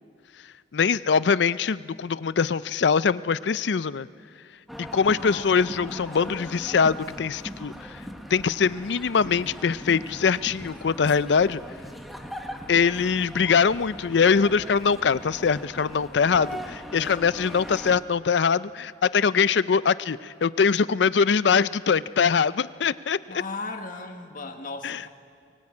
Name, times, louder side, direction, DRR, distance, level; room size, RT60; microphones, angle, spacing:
voice 1, 0.7-4.1 4.9-7.7 8.3-11.6 12.7-23.4 24.8-25.0, left 6 dB, 70° left, 17 dB, 0.5 m, -23 dB
sound 1, 4.7-18.0, equal, ahead, 1.3 m, -40 dB
voice 2, 5.1-6.8 23.3-25.1, left 3 dB, 50° left, 4 dB, 1.5 m, -38 dB
22.5 x 19.0 x 8.4 m, 2.2 s
head